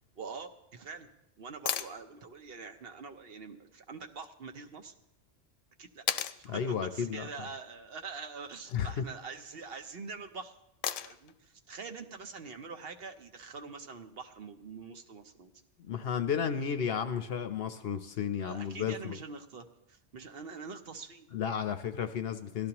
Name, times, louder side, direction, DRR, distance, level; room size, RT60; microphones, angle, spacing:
voice 1, 0.2-1.1 1.4-4.9 5.8-6.0 6.4-10.5 11.0-15.5 18.4-21.3, right 5 dB, 55° right, 6 dB, 0.9 m, -45 dB
sound 1, 1.7-2.0 4.2-4.3 6.1-6.4 8.4-8.8 10.8-11.3 13.4-13.5, left 10 dB, 85° left, 0.9 m, -34 dB
voice 2, 6.5-7.3 8.7-9.0 15.8-19.2 21.3-22.7, left 7 dB, 60° left, 9 dB, 0.8 m, -33 dB
17.5 x 12.5 x 2.9 m, 0.84 s
omnidirectional pair, 1.3 m